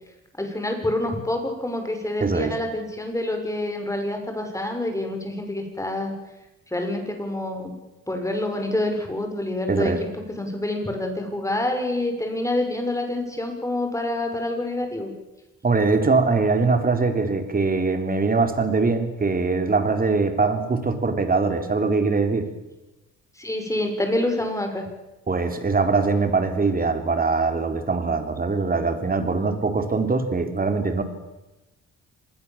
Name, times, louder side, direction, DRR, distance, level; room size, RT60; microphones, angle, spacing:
voice 1, 0.4-6.1 6.7-7.7 8.1-15.1 23.4-24.9, left 1 dB, 10° left, 5 dB, 6.3 m, -27 dB
voice 2, 2.2-2.5 9.7-10.0 15.6-22.5 25.3-31.0, right 4 dB, 30° right, 7 dB, 3.9 m, -22 dB
26.0 x 20.5 x 7.5 m, 1.0 s
cardioid pair, 90°, 30 cm